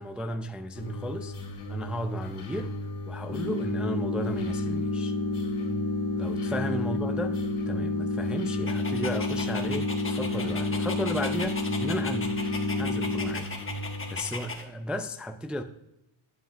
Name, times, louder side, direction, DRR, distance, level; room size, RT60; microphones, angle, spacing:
voice 1, 0.0-1.4 1.7-2.7 3.1-5.2 6.2-12.3 12.8-13.5 14.1-15.6, equal, ahead, 0.4 m, -34 dB
sound 1, 0.7-14.2, left 1 dB, 60° left, 2.9 m, -37 dB
sound 2, 3.3-13.3, left 2 dB, 20° right, 2.2 m, -30 dB
Dog, 8.7-14.6, left 3 dB, 25° left, 1.2 m, -38 dB
9.2 x 7.2 x 2.5 m
cardioid pair, 85°, 47 cm